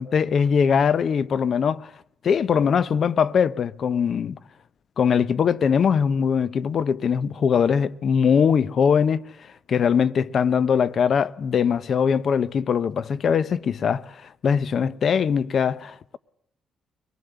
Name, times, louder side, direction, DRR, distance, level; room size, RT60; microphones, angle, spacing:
voice 1, 0.0-1.9 2.2-4.4 5.0-9.2 9.7-14.1 14.4-16.2, left 7 dB, 55° left, 0.9 m, -21 dB
24.0 x 19.5 x 8.1 m
cardioid pair, 90°, 0 cm